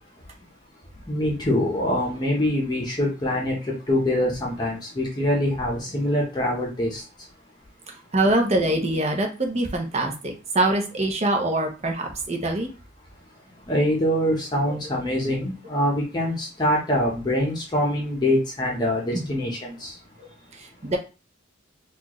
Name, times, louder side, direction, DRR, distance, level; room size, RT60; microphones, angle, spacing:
voice 1, 1.1-3.6 3.9-7.0 13.7-19.9, left 1 dB, 20° left, -3 dB, 0.9 m, -24 dB
voice 2, 7.9-12.7 14.7-14.8 19.1-19.3 20.2-21.0, right 1 dB, 35° right, 3 dB, 0.8 m, -24 dB
4.3 x 2.5 x 3.0 m, 0.32 s
head